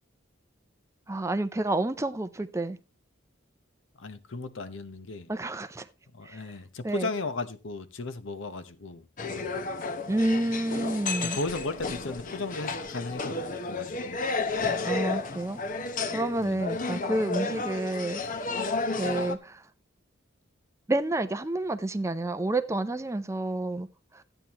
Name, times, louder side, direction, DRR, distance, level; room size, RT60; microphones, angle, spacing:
voice 1, 1.1-2.8 5.3-5.9 6.2-6.5 6.8-7.1 10.1-11.4 14.9-15.6 16.1-19.6 20.9-23.9 24.1-24.2, right 2 dB, 15° right, 0.5 m, -29 dB
voice 2, 4.0-5.3 6.1-9.6 11.2-14.2 16.4-16.7, left 3 dB, 70° left, 0.9 m, -36 dB
sound 1, 9.2-19.4, left 3 dB, 40° left, 0.8 m, -32 dB
13.0 x 9.0 x 3.0 m
head